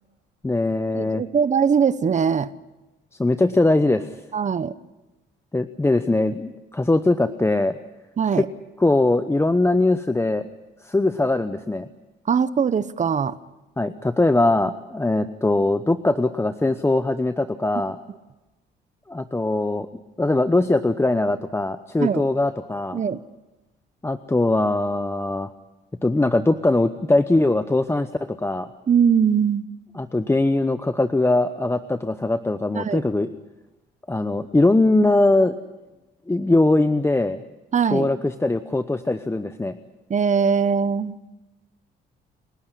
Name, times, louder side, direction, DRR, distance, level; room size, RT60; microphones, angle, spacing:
voice 1, 0.4-1.2 3.2-4.1 5.5-7.8 8.4-8.5 8.8-10.5 10.8-11.9 13.8-18.0 19.1-19.9 20.2-23.0 24.0-25.5 26.0-28.7 30.0-33.3 34.1-35.5 36.3-37.4 37.9-39.8, left 2 dB, 15° left, 10 dB, 0.9 m, -21 dB
voice 2, 0.9-2.5 4.3-4.7 8.2-8.5 12.3-13.4 22.0-22.2 22.9-23.2 28.9-29.6 32.7-33.0 37.7-38.1 40.1-41.2, right 6 dB, 35° right, 15 dB, 1.0 m, -21 dB
29.5 x 12.5 x 9.9 m, 1.1 s
cardioid pair, 90°, 20 cm